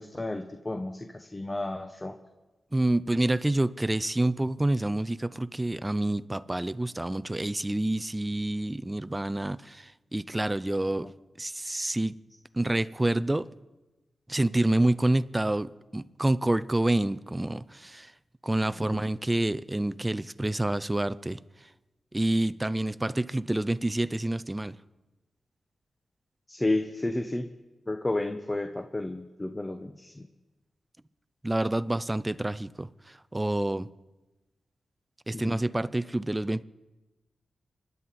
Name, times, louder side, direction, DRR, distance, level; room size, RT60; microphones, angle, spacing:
voice 1, 0.0-2.1 11.0-11.1 18.9-19.1 26.5-27.5 27.9-30.3 35.3-35.6, left 2 dB, 20° left, 1.0 m, -32 dB
voice 2, 2.7-11.1 11.4-12.1 12.5-13.5 14.3-18.1 18.4-21.4 22.1-24.8 31.4-33.9 35.3-36.6, right 1 dB, 15° right, 0.6 m, -28 dB
26.0 x 11.0 x 4.2 m
cardioid pair, 65°, 0 cm